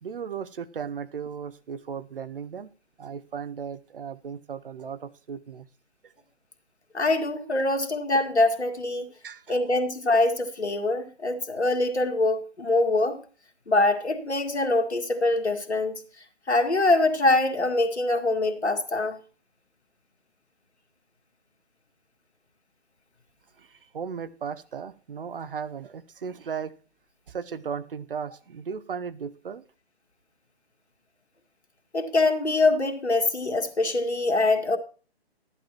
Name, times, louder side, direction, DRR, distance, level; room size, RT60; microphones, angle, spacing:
voice 1, 0.0-2.7 3.0-5.7 6.0-6.1 9.2-9.6 23.6-26.7 27.3-29.6, right 6 dB, 55° right, 13 dB, 0.8 m, -36 dB
voice 2, 6.9-9.1 9.5-13.2 13.7-16.0 16.5-19.2 31.9-34.8, left 2 dB, 80° left, 4 dB, 1.9 m, -24 dB
13.5 x 11.0 x 3.0 m, 0.38 s
figure-of-eight pair, 135°, 33 cm